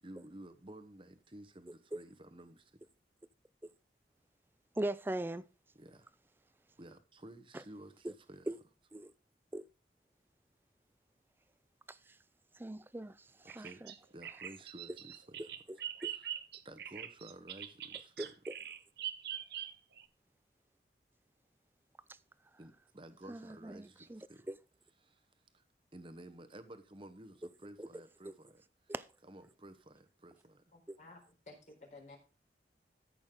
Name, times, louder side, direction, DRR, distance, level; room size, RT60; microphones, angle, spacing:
voice 1, 0.0-2.8 5.8-6.1 6.8-8.5 13.4-13.8 14.1-15.5 16.1-16.3 16.6-18.3 22.6-24.5 25.0-25.2 25.5-25.6 25.9-28.9 29.2-30.6, right 1 dB, 30° right, 1.0 m, -53 dB
voice 2, 4.8-5.5 7.5-7.6 8.0-8.1 8.5-8.6 8.9-9.1 9.5-9.7 11.9-12.2 12.5-13.9 15.7-15.8 16.0-16.1 18.2-18.5 22.1-22.2 23.3-24.6 27.8-27.9 28.3-28.4 28.9-29.1 30.9-31.0, right 1 dB, 10° right, 0.4 m, -40 dB
Bird vocalization bird call bird song, 13.5-20.0, right 10 dB, 60° right, 0.8 m, -43 dB
voice 3, 30.7-31.2 31.5-32.2, left 2 dB, 45° left, 4.0 m, -54 dB
13.5 x 6.3 x 3.8 m
head